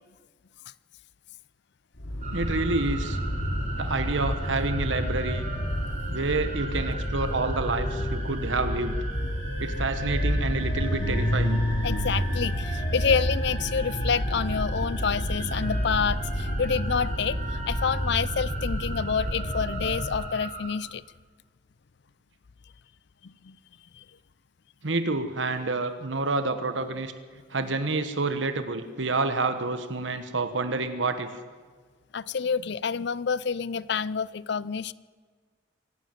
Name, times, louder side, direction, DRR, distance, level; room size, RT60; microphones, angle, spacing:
sound 1, 2.0-20.3, equal, 90° left, 3.0 m, -29 dB
sound 2, 2.2-20.7, right 3 dB, 40° right, 5.1 m, -40 dB
voice 1, 2.3-3.2 3.8-5.4 6.1-9.0 9.6-11.6 24.8-27.1 27.5-31.4, right 3 dB, 70° right, 9 dB, 1.3 m, -28 dB
sound 3, 4.9-15.2 15.5-20.5, left 2 dB, 10° left, 6.0 m, -44 dB
voice 2, 11.8-21.0 23.2-23.6 24.0-24.1 32.1-34.9, left 6 dB, 60° left, 19 dB, 0.5 m, -28 dB
25.0 x 11.5 x 9.2 m, 1.5 s
head